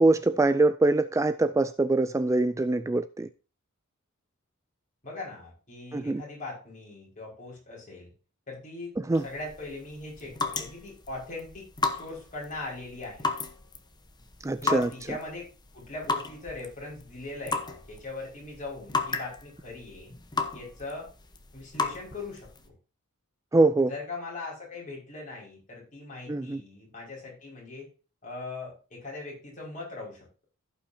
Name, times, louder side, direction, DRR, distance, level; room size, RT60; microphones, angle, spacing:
voice 1, 0.0-3.3 5.9-6.2 9.1-9.2 14.4-14.9 23.5-23.9 26.3-26.6, right 2 dB, 15° right, 0.3 m, -23 dB
voice 2, 5.0-8.1 8.5-9.0 9.2-11.7 11.9-13.3 14.6-20.1 20.5-21.1 21.5-22.7 23.9-27.9 28.2-30.4, left 3 dB, 35° left, 5.5 m, -40 dB
sound 1, 9.1-22.7, left 3 dB, 20° left, 1.0 m, -35 dB
15.5 x 5.8 x 2.8 m
head